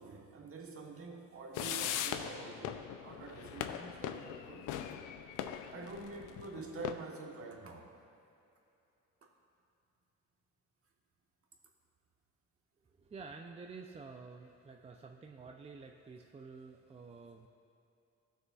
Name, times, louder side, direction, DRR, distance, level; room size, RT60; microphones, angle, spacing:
voice 1, 0.0-4.7 5.7-7.9, right 3 dB, 50° right, 1 dB, 1.2 m, -47 dB
sound 1, 1.5-6.9, left 10 dB, 85° left, 0.5 m, -40 dB
voice 2, 12.9-17.5, right 4 dB, 20° right, 3 dB, 0.4 m, -50 dB
15.0 x 6.4 x 2.4 m, 2.7 s
cardioid pair, 90°, 30 cm